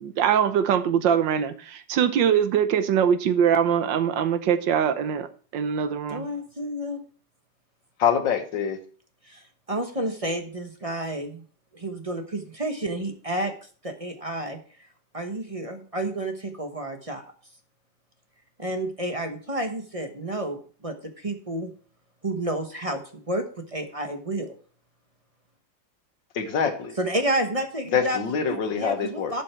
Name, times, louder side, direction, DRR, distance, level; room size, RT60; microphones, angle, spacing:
voice 1, 0.0-5.3 5.5-6.3, right 8 dB, 80° right, 11 dB, 1.6 m, -22 dB
voice 2, 6.1-7.0 9.2-11.4 11.7-13.5 13.8-14.6 15.1-17.2 18.6-21.7 22.2-24.6 27.0-28.2 28.5-29.4, right 1 dB, 25° right, 5 dB, 1.0 m, -30 dB
voice 3, 8.0-8.8 26.3-26.9 27.9-29.3, left 7 dB, 80° left, 6 dB, 2.1 m, -25 dB
12.0 x 6.9 x 4.4 m, 0.42 s
omnidirectional pair, 2.0 m